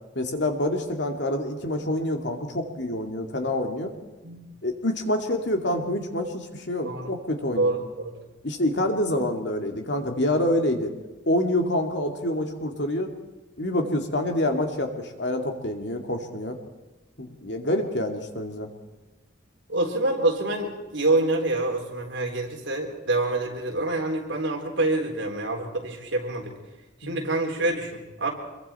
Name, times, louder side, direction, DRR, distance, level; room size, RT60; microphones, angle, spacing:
voice 1, 0.2-3.9 4.6-7.8 8.4-10.9 11.3-13.1 13.6-16.6 17.2-18.7 27.0-27.2, left 1 dB, 60° left, 3 dB, 2.6 m, -27 dB
voice 2, 7.6-8.1 9.1-9.2 19.7-26.5 27.0-28.3, right 2 dB, 70° right, 1 dB, 3.8 m, -26 dB
26.0 x 23.0 x 4.5 m, 1.1 s
head